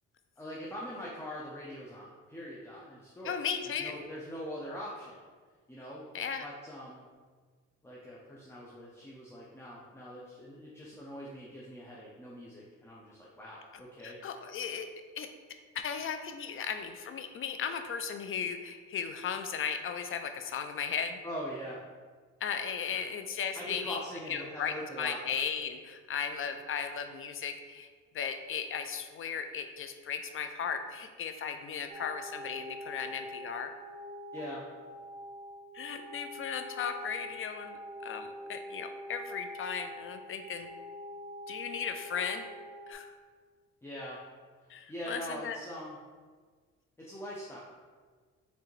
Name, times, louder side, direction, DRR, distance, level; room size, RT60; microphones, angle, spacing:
voice 1, 0.4-3.4 3.8-5.2 5.7-6.1 6.4-7.0 7.8-14.2 21.2-21.8 22.9-23.0 23.5-25.2 34.3-34.7 43.8-44.2 44.9-46.0 47.0-47.6, equal, 10° left, -5 dB, 0.7 m, -42 dB
voice 2, 3.2-4.0 6.1-6.5 14.0-14.9 15.2-15.3 15.7-21.2 22.4-27.9 28.1-33.7 35.7-40.7 41.5-42.5 42.9-43.1 44.7-45.6, left 7 dB, 45° left, 7 dB, 0.5 m, -36 dB
sound 1, 31.9-42.9, left 1 dB, 25° right, 1.1 m, -45 dB
4.8 x 3.4 x 3.2 m, 1.5 s
cardioid pair, 90°, 30 cm